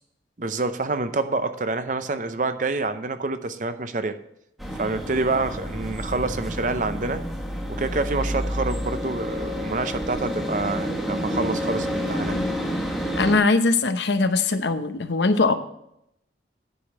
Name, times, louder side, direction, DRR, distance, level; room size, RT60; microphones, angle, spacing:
voice 1, 0.4-4.2 4.7-7.2 7.7-12.4, right 3 dB, 45° right, 10 dB, 0.6 m, -27 dB
sound 1, 4.6-13.4, equal, ahead, 1.4 m, -29 dB
voice 2, 13.2-15.6, left 3 dB, 70° left, 9 dB, 0.8 m, -21 dB
10.0 x 5.0 x 7.3 m, 0.78 s
head